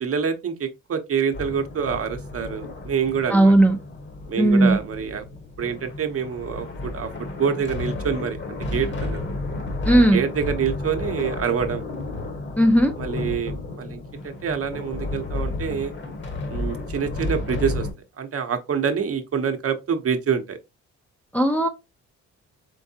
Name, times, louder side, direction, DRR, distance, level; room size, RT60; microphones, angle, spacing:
voice 1, 0.0-3.5 4.3-5.2 5.6-7.1 7.4-8.4 8.7-9.3 10.1-11.9 13.0-15.9 16.5-17.9 18.2-20.6, right 7 dB, 50° right, 0.9 m, -26 dB
sound 1, 1.3-17.9, left 2 dB, 40° left, 1.3 m, -32 dB
voice 2, 3.3-3.8 4.4-4.8 9.9-10.2 12.6-12.9 21.3-21.7, right 1 dB, 5° left, 0.6 m, -16 dB
4.6 x 3.4 x 2.7 m
cardioid pair, 90°, 30 cm